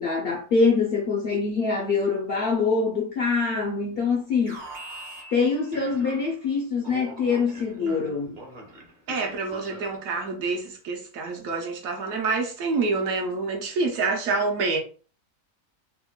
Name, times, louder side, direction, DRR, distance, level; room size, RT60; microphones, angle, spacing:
voice 1, 0.0-4.6 5.3-8.4, left 4 dB, 70° left, 0.5 m, -24 dB
Alarm, 4.4-6.5 6.8-10.1, right 1 dB, 45° right, 0.7 m, -43 dB
voice 2, 7.8-8.1 9.1-14.8, right 4 dB, 70° right, 1.0 m, -27 dB
3.7 x 2.1 x 2.3 m
omnidirectional pair, 1.6 m